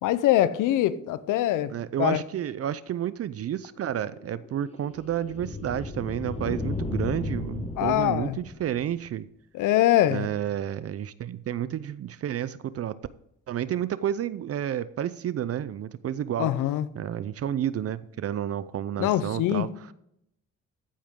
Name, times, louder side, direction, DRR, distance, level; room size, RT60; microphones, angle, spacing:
voice 1, 0.0-1.7 2.0-2.2 7.8-8.4 9.5-10.3 16.4-16.9 19.0-19.7, left 13 dB, 85° left, 0.8 m, -23 dB
voice 2, 1.7-9.3 10.1-13.0 13.5-16.5 16.9-19.9, right 10 dB, 50° right, 0.5 m, -30 dB
sound 1, 3.5-9.1, left 3 dB, 20° left, 1.2 m, -35 dB
14.5 x 8.6 x 3.7 m
cardioid pair, 90°, 30 cm